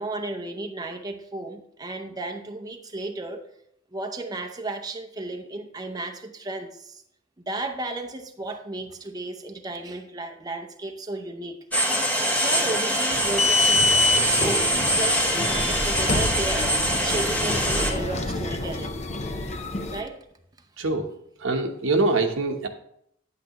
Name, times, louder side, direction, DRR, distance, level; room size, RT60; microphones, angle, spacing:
voice 1, 0.0-3.4 3.9-7.0 7.5-11.6 12.2-19.0 19.9-20.2, right 2 dB, 20° right, 4 dB, 0.6 m, -34 dB
sound 1, 11.7-17.9, equal, 10° left, 1.0 m, -24 dB
sound 2, 13.1-20.0, left 3 dB, 35° left, 0.7 m, -27 dB
voice 2, 21.4-22.7, right 3 dB, 80° right, 5 dB, 1.0 m, -24 dB
9.6 x 8.1 x 3.0 m, 0.73 s
head